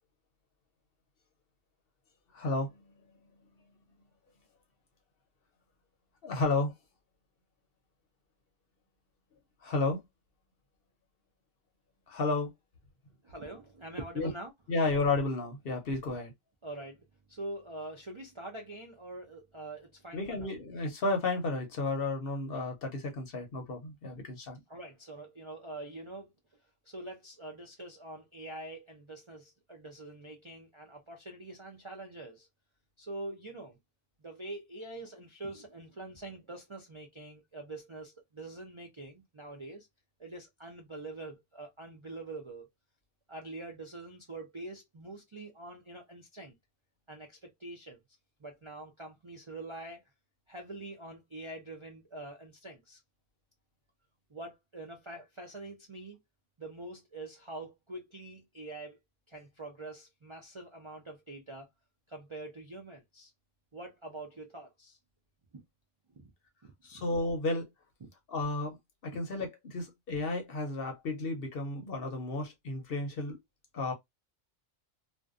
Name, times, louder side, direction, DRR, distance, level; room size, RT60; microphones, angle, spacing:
voice 1, 2.3-2.9 6.2-6.7 9.6-10.0 12.1-12.5 14.2-14.3 14.7-16.3 20.1-24.6 66.8-67.7 68.3-68.8 69.0-73.4 73.7-73.9, left 2 dB, 55° left, 0.8 m, -32 dB
voice 2, 13.2-14.5 16.6-20.5 24.7-26.3 26.8-32.5 33.0-33.8 34.2-39.9 40.2-42.7 43.3-46.5 47.1-48.0 48.4-50.0 50.5-53.0 54.3-56.2 56.6-59.0 59.3-61.7 62.1-63.3 63.7-65.0 66.2-66.3 66.9-67.0, right 2 dB, 55° right, 0.3 m, -45 dB
2.5 x 2.2 x 2.3 m
omnidirectional pair, 1.3 m